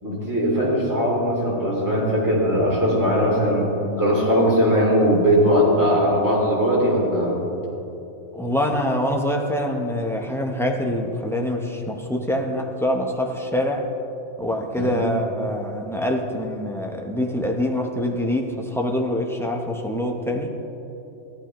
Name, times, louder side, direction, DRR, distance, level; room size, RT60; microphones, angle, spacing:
voice 1, 0.0-3.7 4.0-7.4 14.8-15.0, equal, 15° right, -6 dB, 2.6 m, -20 dB
voice 2, 8.3-13.8 14.4-20.5, left 1 dB, 5° left, 0 dB, 0.5 m, -25 dB
14.5 x 11.5 x 3.0 m, 3.0 s
omnidirectional pair, 1.3 m